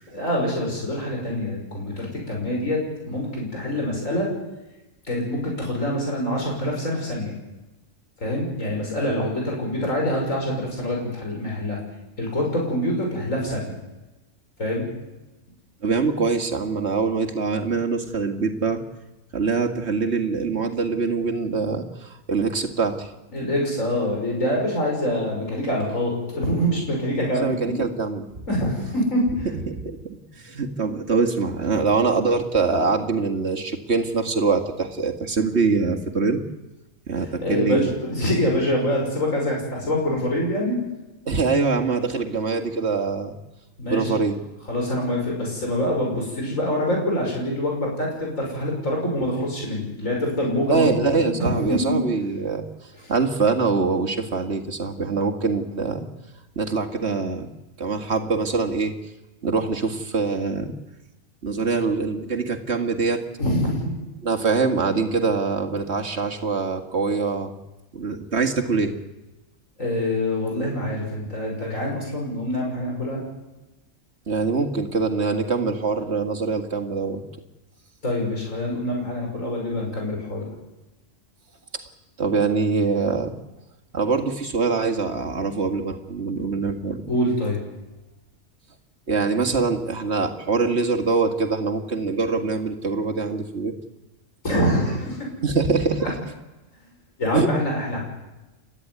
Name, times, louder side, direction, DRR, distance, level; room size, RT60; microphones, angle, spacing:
voice 1, 0.1-4.3 5.1-7.3 8.2-11.8 12.2-13.7 14.6-14.8 23.3-27.8 28.5-29.5 37.4-40.8 43.8-44.1 44.7-52.0 53.0-53.1 63.4-63.9 69.8-73.2 78.0-80.5 87.1-87.6 94.4-95.2 96.0-96.1 97.2-98.0, left 1 dB, 85° left, -1 dB, 6.6 m, -25 dB
voice 2, 15.8-18.8 19.3-23.1 27.3-28.5 29.5-36.4 37.1-37.9 41.3-43.4 43.9-44.4 50.7-52.7 53.1-56.1 56.6-57.5 57.8-58.9 59.4-60.7 61.4-63.2 64.2-67.5 67.9-69.0 74.3-77.2 82.2-83.3 83.9-87.0 89.1-93.7 95.4-96.3 97.3-97.5, right 4 dB, 55° right, 3 dB, 2.3 m, -24 dB
30.0 x 13.0 x 9.7 m, 1.0 s
omnidirectional pair, 1.3 m